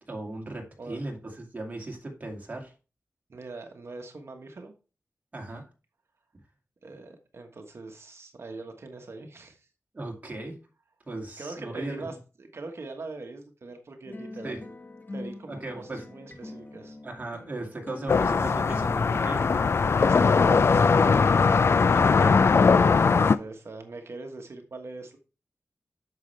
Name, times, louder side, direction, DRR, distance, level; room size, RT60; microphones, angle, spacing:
voice 1, 0.1-2.7 5.3-5.6 9.9-10.6 11.1-12.2 14.4-14.6 15.5-16.0 17.0-19.5 21.9-22.4, right 2 dB, 30° right, 1 dB, 2.4 m, -37 dB
voice 2, 3.3-4.7 5.5-5.6 6.8-9.7 11.4-14.7 15.1-17.0 20.0-21.5 23.0-25.2, right 3 dB, 60° right, 4 dB, 1.4 m, -42 dB
sound 1, 14.0-22.4, left 2 dB, 35° left, 1.2 m, -44 dB
sound 2, 18.1-23.4, left 5 dB, 55° left, 0.4 m, -20 dB
9.4 x 6.8 x 3.3 m, 0.32 s
wide cardioid pair, 120°, 5 cm